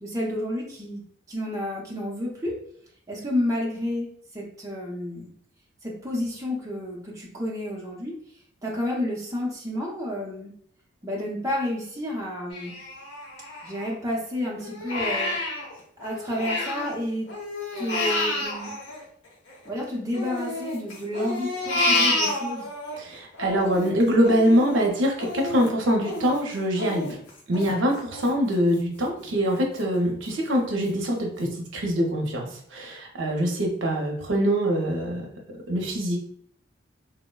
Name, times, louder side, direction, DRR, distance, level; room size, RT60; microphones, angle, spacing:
voice 1, 0.0-2.5 3.1-5.3 5.8-8.2 8.6-10.5 11.0-12.7 13.6-15.3 16.0-17.3 17.8-18.7 19.6-22.7, left 1 dB, 15° right, -4 dB, 0.5 m, -30 dB
Crying sobbing, 12.5-14.2 14.6-17.0 17.3-19.7 20.1-22.9 23.3-28.8 29.2-29.3 29.8-30.3 30.8-30.9 31.4-31.5, left 2 dB, 70° left, 0.8 m, -30 dB
voice 2, 22.9-27.1 27.5-32.5 32.7-35.3 35.7-36.2, equal, 75° right, 0 dB, 0.6 m, -24 dB
3.7 x 2.1 x 2.2 m, 0.64 s
head